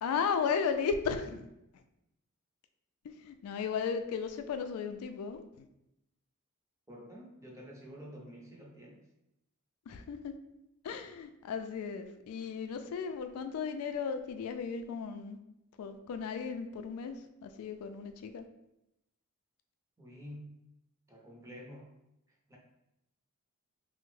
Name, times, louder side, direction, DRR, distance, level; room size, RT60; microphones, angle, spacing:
voice 1, 0.0-1.5 3.0-5.4 9.9-10.3 10.8-15.4 15.8-17.2 17.4-18.5, left 6 dB, 90° left, 8 dB, 0.3 m, -35 dB
voice 2, 6.9-9.0 20.0-20.5 21.1-21.9 22.5-22.6, equal, 15° right, -3 dB, 0.6 m, -49 dB
3.3 x 2.0 x 3.1 m, 0.86 s
head